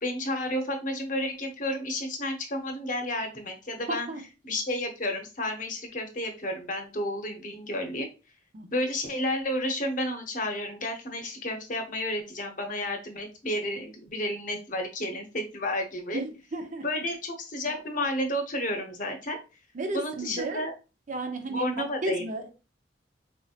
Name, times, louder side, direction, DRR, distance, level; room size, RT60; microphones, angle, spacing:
voice 1, 0.0-4.1 4.4-8.1 8.7-16.2 16.8-19.4 19.9-20.7 21.5-22.3, left 1 dB, 50° left, 0.8 m, -31 dB
voice 2, 3.9-4.2 8.5-8.7 16.1-16.9 17.6-17.8 19.7-20.7 21.1-21.7 22.0-22.5, right 2 dB, 45° right, 0.6 m, -33 dB
4.2 x 2.8 x 2.4 m
head